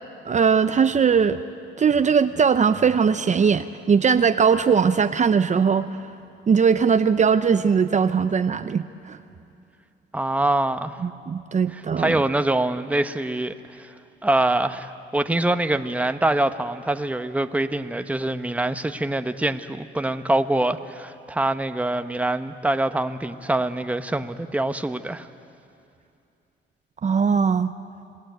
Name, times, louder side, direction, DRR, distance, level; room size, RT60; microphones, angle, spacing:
voice 1, 0.2-1.4 1.8-5.9 6.5-9.2 11.0-12.2 27.0-27.7, right 6 dB, 35° right, 10 dB, 0.7 m, -20 dB
voice 2, 10.1-11.0 11.7-13.9 14.2-25.3, right 1 dB, 5° right, 9 dB, 0.9 m, -24 dB
26.5 x 18.0 x 9.3 m, 2.6 s
cardioid pair, 90°, 20 cm